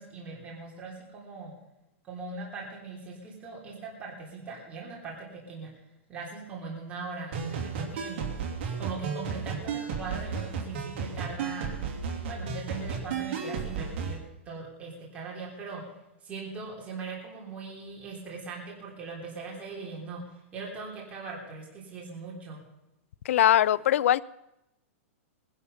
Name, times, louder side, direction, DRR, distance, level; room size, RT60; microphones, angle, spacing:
voice 1, 0.0-1.5 2.0-5.7 6.1-8.2 8.8-11.7 12.3-15.8 16.2-20.2 20.5-22.6, right 4 dB, 20° right, 3.4 m, -40 dB
sound 1, 7.3-14.2, right 6 dB, 50° right, 2.8 m, -34 dB
voice 2, 23.3-24.2, left 11 dB, 70° left, 0.5 m, -21 dB
19.5 x 11.5 x 5.6 m
supercardioid pair, 155°, 7 cm